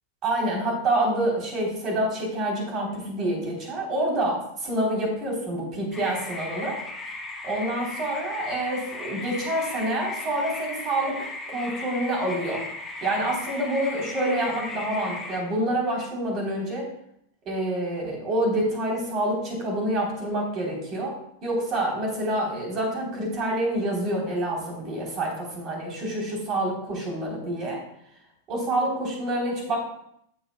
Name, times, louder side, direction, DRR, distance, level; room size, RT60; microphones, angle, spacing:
voice 1, 0.2-6.8 7.4-12.6 13.0-16.9 17.4-27.8 28.5-29.8, right 1 dB, 35° right, -1 dB, 3.3 m, -27 dB
sound 1, 5.9-15.4, left 2 dB, 20° left, 1.6 m, -36 dB
14.5 x 7.1 x 2.2 m, 0.73 s
figure-of-eight pair, 90°, 0 cm